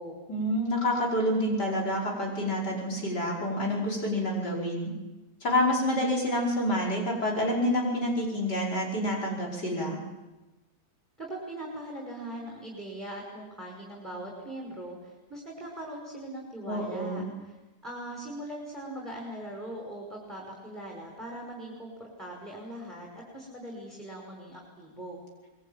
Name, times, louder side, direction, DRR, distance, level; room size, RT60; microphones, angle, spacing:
voice 1, 0.3-4.9 5.4-10.0 16.7-17.2, left 1 dB, 70° left, -2 dB, 6.1 m, -28 dB
voice 2, 11.2-25.2, right 1 dB, 10° right, -2 dB, 5.8 m, -41 dB
24.5 x 22.0 x 9.1 m, 1.1 s
omnidirectional pair, 1.9 m